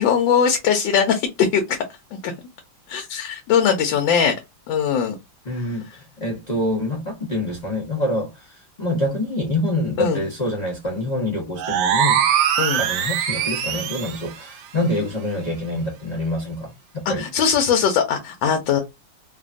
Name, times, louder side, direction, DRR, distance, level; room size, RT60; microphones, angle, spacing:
voice 1, 0.0-1.8 2.1-2.3 2.9-4.3 4.7-5.2 10.0-10.2 12.6-12.8 17.2-18.8, left 7 dB, 80° left, 1.3 m, -20 dB
voice 2, 5.4-12.2 12.8-17.3, left 1 dB, 55° left, 0.4 m, -26 dB
sound 1, 11.6-14.3, right 9 dB, 75° right, 1.0 m, -21 dB
3.2 x 2.1 x 2.5 m
omnidirectional pair, 2.1 m